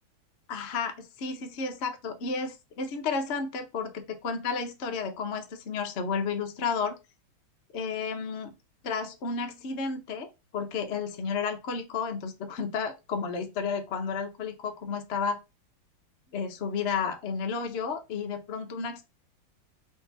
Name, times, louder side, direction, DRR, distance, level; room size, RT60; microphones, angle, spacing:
voice 1, 0.5-6.9 7.7-8.5 8.8-15.4 16.3-19.0, left 5 dB, 75° left, 0.6 m, -32 dB
3.8 x 2.7 x 3.9 m
omnidirectional pair, 2.2 m